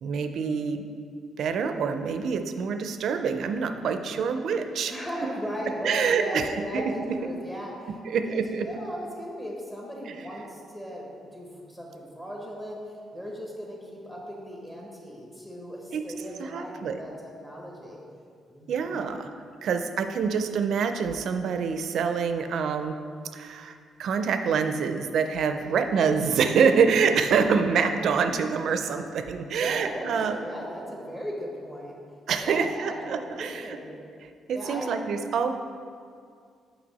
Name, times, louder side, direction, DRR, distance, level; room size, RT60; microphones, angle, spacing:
voice 1, 0.0-0.9 1.4-4.9 5.2-5.3 5.8-6.5 6.7-7.2 8.0-8.5 10.1-10.2 15.9-16.0 16.4-17.0 18.7-19.3 19.6-23.0 23.3-30.4 32.3-33.8 34.5-35.5, right 6 dB, 70° right, 8 dB, 0.4 m, -26 dB
voice 2, 4.9-7.9 8.3-12.8 13.1-18.0 18.5-19.1 25.5-25.9 27.9-28.0 29.6-31.9 32.4-33.9 34.5-34.9, equal, 20° left, -3 dB, 1.2 m, -37 dB
6.0 x 5.1 x 4.1 m, 2.2 s
cardioid pair, 90°, 0 cm